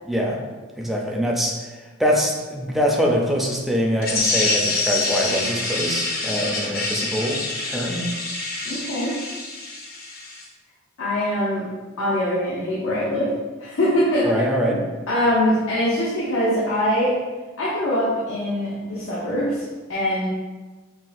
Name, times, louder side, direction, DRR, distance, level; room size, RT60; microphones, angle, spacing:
voice 1, 0.1-0.4 0.8-1.6 2.0-8.1 14.2-14.8, equal, ahead, -1 dB, 0.4 m, -23 dB
sound 1, 4.0-10.4, left 3 dB, 45° left, 0.7 m, -26 dB
voice 2, 8.6-9.1 11.0-11.7 12.0-13.3 13.6-14.3 15.1-17.1 17.6-20.3, equal, 90° left, -9 dB, 0.9 m, -23 dB
5.7 x 2.2 x 2.5 m, 1.3 s
head